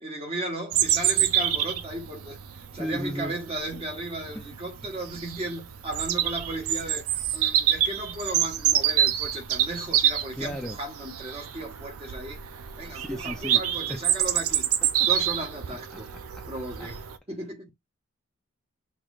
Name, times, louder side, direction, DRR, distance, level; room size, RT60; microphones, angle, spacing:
voice 1, 0.0-2.4 2.7-12.4 12.8-14.7 15.1-16.1 16.5-17.7, right 1 dB, 30° right, 1.3 m, -35 dB
Bird vocalization bird call bird song, 0.7-17.2, right 10 dB, 85° right, 0.5 m, -27 dB
voice 2, 2.8-3.4 4.3-4.4 10.4-10.8 12.9-13.6 13.9-14.0 15.9-16.0 16.8-16.9, equal, 5° left, 0.5 m, -34 dB
5.9 x 3.1 x 2.5 m
head